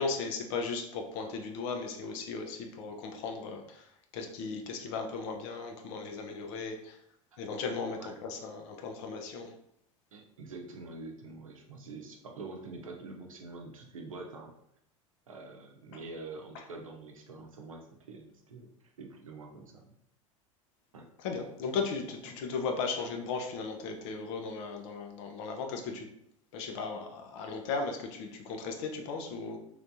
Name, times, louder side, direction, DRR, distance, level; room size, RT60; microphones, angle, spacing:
voice 1, 0.0-7.0 7.4-9.5 15.9-16.0 16.5-16.6 21.2-26.1 26.5-29.6, left 4 dB, 60° left, 3 dB, 0.7 m, -36 dB
voice 2, 10.1-14.5 15.3-18.7 19.0-19.9 20.9-21.1, right 3 dB, 80° right, 2 dB, 0.7 m, -45 dB
3.2 x 3.2 x 2.6 m, 0.73 s
figure-of-eight pair, 80°, 17 cm